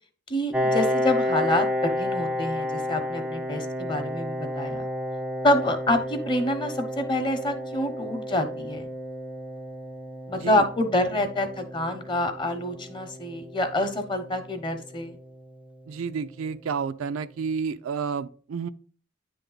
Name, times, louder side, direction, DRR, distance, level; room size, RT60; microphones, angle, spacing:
voice 1, 0.3-4.9 5.4-8.9 10.3-15.2, left 1 dB, 25° left, 0.8 m, -27 dB
Piano, 0.5-15.9, equal, 5° right, 0.3 m, -31 dB
voice 2, 15.9-18.7, right 5 dB, 80° right, 0.4 m, -30 dB
9.6 x 3.4 x 3.9 m
head